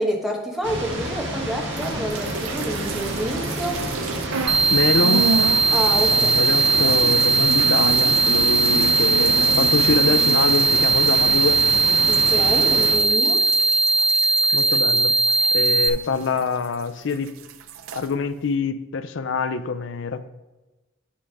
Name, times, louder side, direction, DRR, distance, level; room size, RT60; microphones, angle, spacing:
voice 1, 0.0-3.8 5.7-6.3 12.1-13.4, equal, ahead, 0 dB, 1.1 m, -28 dB
sound 1, 0.6-13.0, right 1 dB, 60° right, 1.6 m, -30 dB
sound 2, 1.7-4.6 4.9-16.8 17.1-18.1, right 4 dB, 85° right, 0.5 m, -32 dB
sound 3, 4.5-15.9, right 4 dB, 25° right, 0.4 m, -19 dB
voice 2, 4.7-5.3 6.1-11.6 14.5-15.2 15.5-17.4 17.9-20.3, left 4 dB, 60° left, 12 dB, 0.4 m, -25 dB
10.0 x 3.5 x 5.3 m, 1.1 s
head